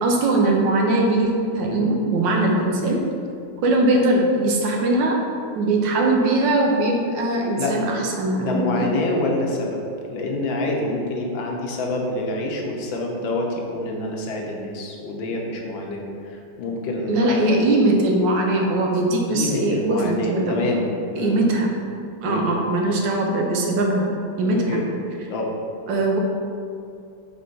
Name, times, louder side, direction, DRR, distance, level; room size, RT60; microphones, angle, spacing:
voice 1, 0.0-3.0 3.6-5.2 5.5-8.9 17.1-20.7 21.2-21.7 22.2-24.1 24.4-24.8 25.9-26.2, right 2 dB, 75° right, 1 dB, 1.4 m, -20 dB
voice 2, 7.6-8.0 8.3-17.4 19.3-20.9 21.1-21.4 22.2-22.4 24.5-24.9 25.3-25.5, left 2 dB, 80° left, 0 dB, 1.6 m, -27 dB
5.5 x 3.4 x 5.3 m, 2.4 s
omnidirectional pair, 2.1 m